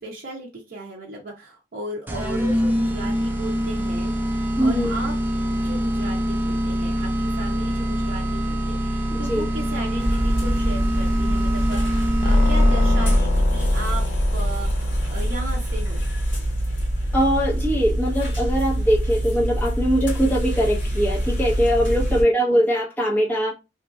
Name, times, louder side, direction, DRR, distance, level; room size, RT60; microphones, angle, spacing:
voice 1, 0.0-5.1 5.4-14.1 14.3-16.0 22.1-22.3, right 2 dB, 50° right, 0.6 m, -36 dB
sound 1, 2.1-13.4, equal, 10° right, 0.5 m, -25 dB
voice 2, 4.6-4.9 9.1-9.5 17.1-23.5, equal, 10° left, 1.2 m, -21 dB
sound 2, 10.0-22.2, right 1 dB, 65° left, 1.7 m, -25 dB
sound 3, 12.2-16.9, left 1 dB, 40° left, 0.5 m, -23 dB
3.0 x 2.4 x 2.4 m
head